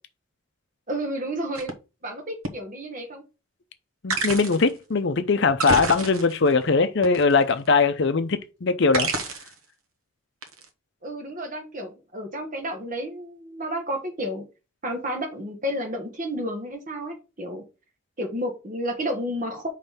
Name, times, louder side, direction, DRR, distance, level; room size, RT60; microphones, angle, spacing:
voice 1, 0.9-1.7 2.0-3.2 11.0-14.4 14.8-17.6 18.2-19.7, equal, 35° right, 1.4 m, -31 dB
sound 1, 1.5-1.7 2.5-2.6 4.1-4.7 5.5-6.5 7.0-7.7 8.9-9.6 10.4-10.7, right 3 dB, 80° right, 1.0 m, -28 dB
voice 2, 4.0-9.1, left 4 dB, 55° left, 0.6 m, -21 dB
5.2 x 3.2 x 5.6 m
head